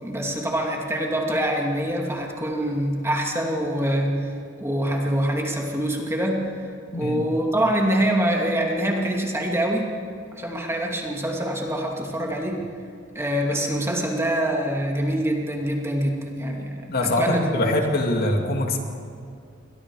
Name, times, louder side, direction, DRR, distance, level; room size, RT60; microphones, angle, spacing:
voice 1, 0.0-6.4 6.9-9.9 10.3-12.6 13.1-17.7, right 1 dB, 15° right, 0 dB, 2.6 m, -25 dB
voice 2, 16.9-18.8, left 1 dB, 50° left, 2 dB, 2.4 m, -23 dB
29.0 x 23.0 x 4.9 m, 2.4 s
head